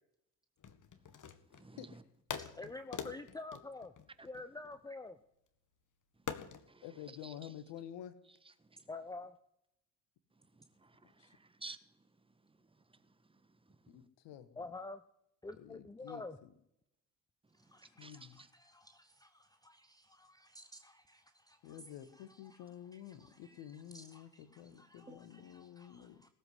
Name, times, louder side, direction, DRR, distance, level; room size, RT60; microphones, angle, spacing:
sound 1, 0.6-1.7 2.3-4.8 6.3-6.7, left 7 dB, 40° left, 1.8 m, -44 dB
voice 1, 1.2-2.0 4.2-4.3 6.6-6.9 7.2-7.5 8.6-8.9 10.4-11.8 12.4-12.6 12.9-13.4 13.7-13.9 17.7-18.5 25.1-25.2, right 3 dB, 10° right, 1.4 m, -55 dB
voice 2, 2.4-3.9 4.2-5.2 8.9-9.4 14.6-15.0 15.4-16.4 17.5-22.6 22.9-26.3, left 2 dB, 10° left, 0.8 m, -50 dB
voice 3, 6.8-8.1 11.2-11.4 13.9-14.6 15.6-16.5 18.0-18.4 21.6-26.3, left 10 dB, 60° left, 1.6 m, -50 dB
18.0 x 7.9 x 9.5 m
figure-of-eight pair, 55°, 49 cm